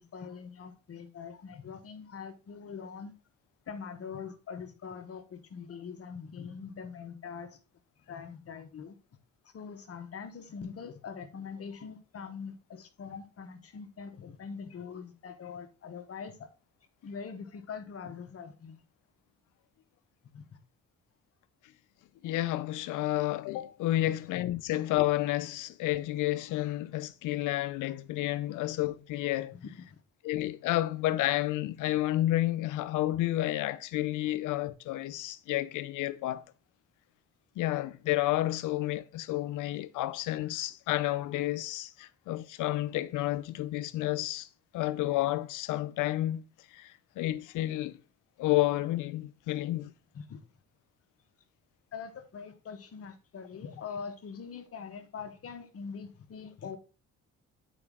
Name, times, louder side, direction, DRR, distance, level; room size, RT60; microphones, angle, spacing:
voice 1, 0.0-3.1 3.7-7.6 8.1-9.0 9.4-16.5 17.0-18.8 20.3-20.4 24.0-24.2 29.5-30.0 42.0-42.1 50.1-50.4 51.9-56.8, left 6 dB, 50° left, 1.1 m, -43 dB
voice 2, 22.2-29.6 30.2-36.5 37.6-44.5 44.7-46.4 46.7-48.0 48.4-49.9, left 15 dB, 85° left, 0.6 m, -30 dB
7.8 x 5.0 x 3.6 m
cardioid pair, 90°, 30 cm